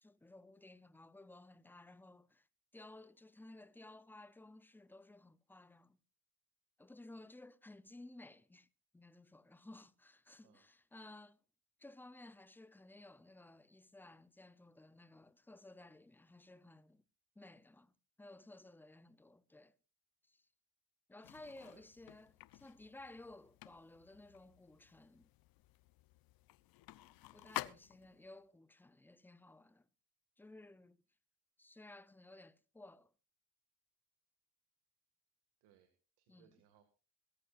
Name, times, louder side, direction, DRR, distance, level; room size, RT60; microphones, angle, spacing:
voice 1, 0.0-2.5 2.7-6.0 6.8-8.7 8.9-11.4 11.8-17.0 17.4-17.9 18.2-19.7 20.3-20.5 21.1-25.3 27.3-29.9 30.4-31.0 31.6-33.1 36.3-36.5, left 2 dB, 5° left, 0.6 m, -57 dB
sound 1, 21.2-28.3, left 17 dB, 60° left, 0.8 m, -51 dB
voice 2, 21.5-21.8 35.6-36.8, right 10 dB, 85° right, 2.1 m, -69 dB
22.0 x 14.0 x 2.5 m
cardioid pair, 115°, 39 cm